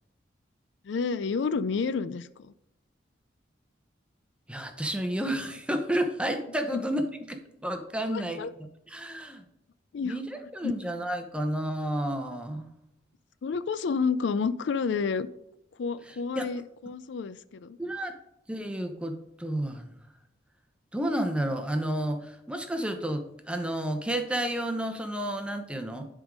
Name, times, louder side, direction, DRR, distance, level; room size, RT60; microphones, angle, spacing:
voice 1, 0.8-2.5 6.7-6.8 8.1-8.5 9.9-10.2 10.6-10.7 13.4-15.3 15.8-17.8, left 5 dB, 75° left, 15 dB, 0.4 m, -30 dB
voice 2, 4.5-9.4 10.0-12.7 16.1-16.5 17.8-18.1 18.5-19.9 20.9-26.1, right 1 dB, 5° right, 6 dB, 0.7 m, -31 dB
11.0 x 3.7 x 5.1 m, 0.80 s
head